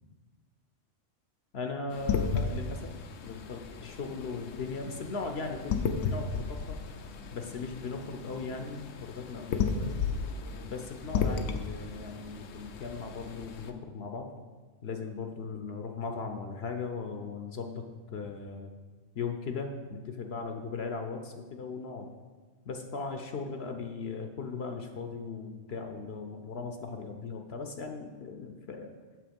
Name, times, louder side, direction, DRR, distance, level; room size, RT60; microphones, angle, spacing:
voice 1, 1.5-2.9 3.2-6.8 7.3-10.0 10.6-14.3 14.8-17.8 18.1-18.7 19.1-22.1 22.7-28.9, left 4 dB, 60° left, 5 dB, 0.9 m, -38 dB
sound 1, 1.9-13.7, left 5 dB, 85° left, 1.0 m, -34 dB
7.6 x 6.8 x 5.2 m, 1.4 s
omnidirectional pair, 1.3 m